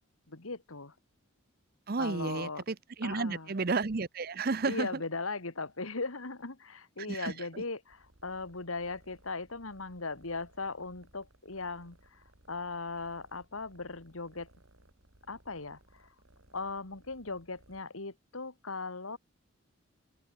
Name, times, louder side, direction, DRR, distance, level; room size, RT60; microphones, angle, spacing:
voice 1, 0.3-0.9 2.0-2.6 3.0-3.5 4.6-14.5 15.3-16.1 16.5-19.2, left 3 dB, 85° left, 2.3 m, -38 dB
voice 2, 1.9-5.0 7.1-7.6, right 4 dB, 45° right, 0.7 m, -32 dB
sound 1, 7.9-17.8, right 1 dB, 80° right, 4.2 m, -63 dB
open air
head